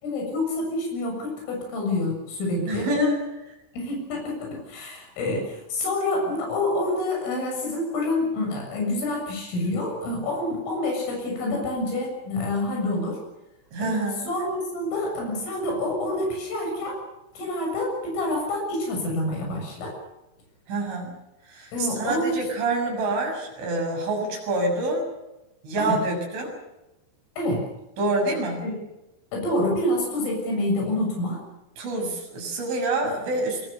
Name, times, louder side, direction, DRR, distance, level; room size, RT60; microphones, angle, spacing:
voice 1, 0.0-2.9 3.7-13.2 13.8-17.0 17.4-20.0 21.7-22.4 25.8-26.0 27.4-27.6 28.6-28.7 29.3-31.4, left 1 dB, 85° left, 0 dB, 9.6 m, -27 dB
voice 2, 2.7-3.2 13.7-14.3 20.7-21.1 21.5-25.1 25.6-26.5 28.0-28.7 31.8-33.7, right 2 dB, 70° right, 1 dB, 9.5 m, -26 dB
26.0 x 23.5 x 6.8 m, 0.96 s
omnidirectional pair, 5.6 m